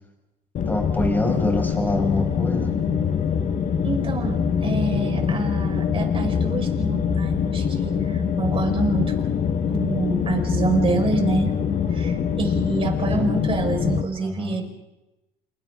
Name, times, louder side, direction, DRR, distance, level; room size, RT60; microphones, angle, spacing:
sound 1, 0.5-14.0, left 7 dB, 50° left, 1.3 m, -24 dB
voice 1, 0.7-2.8 13.0-13.2 14.2-14.6, left 1 dB, 10° left, 2 dB, 5.8 m, -26 dB
voice 2, 3.8-9.1 9.7-11.5 11.9-14.6, right 3 dB, 35° right, 3 dB, 4.8 m, -26 dB
30.0 x 27.5 x 3.7 m, 0.99 s
cardioid pair, 110°, 17 cm